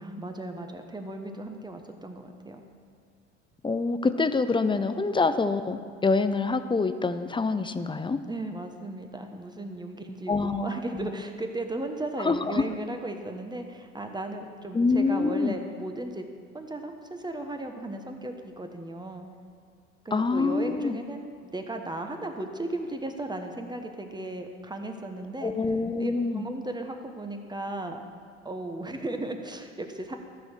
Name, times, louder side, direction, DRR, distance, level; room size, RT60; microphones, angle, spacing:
voice 1, 0.0-2.6 8.2-16.3 16.5-19.3 20.0-25.5 26.0-28.0 28.4-30.2, right 2 dB, 10° right, 4 dB, 1.2 m, -36 dB
voice 2, 3.6-8.2 10.3-10.7 10.9-11.1 12.2-12.6 14.7-15.6 20.1-21.0 25.4-26.4, left 4 dB, 15° left, 11 dB, 0.6 m, -26 dB
14.0 x 6.3 x 6.3 m, 2.2 s
hypercardioid pair, 70°, 34 cm